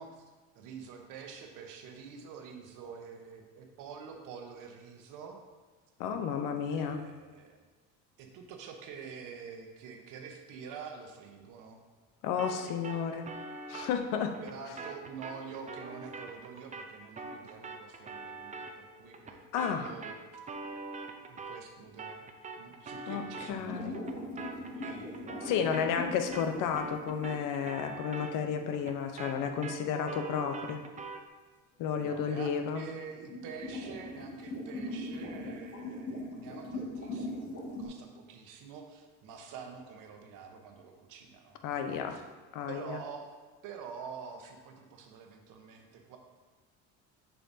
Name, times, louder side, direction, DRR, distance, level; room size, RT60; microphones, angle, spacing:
voice 1, 0.0-5.4 6.6-7.6 8.2-11.8 14.4-20.4 21.2-22.2 22.6-24.0 24.3-25.8 31.9-37.5 37.8-41.6 41.8-42.2 42.7-43.3 43.6-46.2, right 6 dB, 70° right, 3 dB, 1.1 m, -47 dB
voice 2, 6.0-7.1 12.2-13.3 13.7-14.4 19.5-19.9 23.1-23.9 25.4-30.8 31.8-32.9 41.6-42.2 42.5-43.0, left 7 dB, 65° left, 7 dB, 0.8 m, -32 dB
sound 1, 12.4-21.7 22.0-31.3, right 3 dB, 20° right, 0.6 m, -44 dB
sound 2, 23.6-27.6 28.2-28.6 32.7-37.9, left 1 dB, 45° left, 2.1 m, -40 dB
7.1 x 5.7 x 2.7 m, 1.3 s
supercardioid pair, 95°, 33 cm